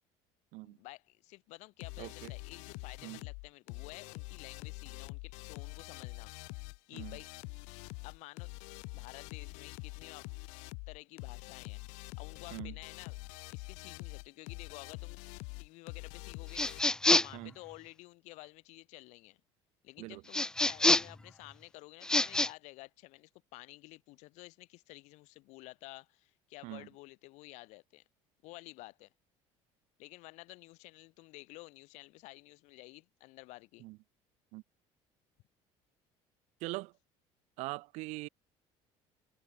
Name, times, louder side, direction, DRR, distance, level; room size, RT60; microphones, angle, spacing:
voice 1, 0.6-6.3 6.9-7.3 8.0-8.5 8.9-10.3 10.9-11.8 12.2-13.2 13.5-15.2 15.6-19.4 19.8-28.0 28.4-29.1 30.0-33.8, left 22 dB, 70° left, 5.1 m, -52 dB
sound 1, 1.8-16.8, left 35 dB, 90° left, 2.4 m, -45 dB
voice 2, 2.0-2.3 3.0-3.2 6.9-7.2 12.5-12.7 17.3-17.5 20.0-20.2 26.6-26.9 33.8-34.0 34.5-34.6 36.6-36.9 37.6-38.3, right 23 dB, 70° right, 1.3 m, -42 dB
sound 2, 16.5-17.4 20.3-21.2 22.0-22.5, left 2 dB, 5° left, 0.7 m, -27 dB
cardioid pair, 145°, 12 cm